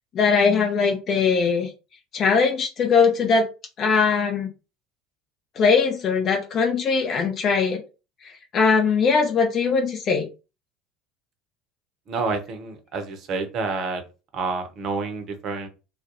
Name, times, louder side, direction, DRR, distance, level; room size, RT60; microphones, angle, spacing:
voice 1, 0.1-1.7 2.1-3.5 3.8-4.5 5.6-7.8 8.5-10.3, left 5 dB, 40° left, 2 dB, 0.5 m, -20 dB
voice 2, 12.1-14.0 14.3-15.7, right 4 dB, 45° right, 6 dB, 0.6 m, -28 dB
2.3 x 2.0 x 2.7 m, 0.31 s
figure-of-eight pair, 65°, 0 cm